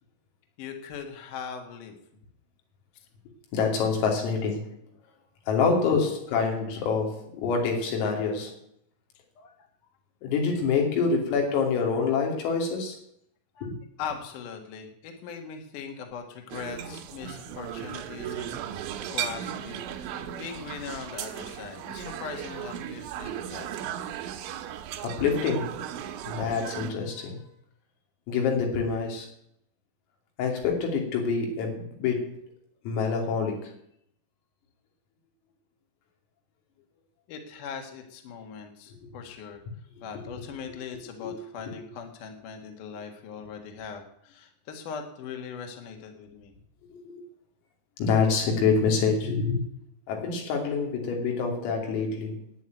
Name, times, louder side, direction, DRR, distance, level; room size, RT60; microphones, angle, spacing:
voice 1, 0.6-2.0 6.0-6.1 9.4-9.7 13.5-13.7 14.0-18.6 19.1-23.7 37.3-39.6 40.0-46.5, left 6 dB, 55° left, 2.6 m, -40 dB
voice 2, 3.5-4.7 5.5-8.6 10.2-13.0 13.6-13.8 25.0-25.8 26.2-27.4 28.3-29.3 30.4-32.5 32.9-33.8 39.0-39.1 41.2-41.4 46.9-47.3 48.0-49.6 50.1-52.5, left 5 dB, 80° left, 5.3 m, -26 dB
sound 1, 16.5-26.9, right 10 dB, 75° right, 2.9 m, -36 dB
10.5 x 9.7 x 9.2 m
omnidirectional pair, 6.0 m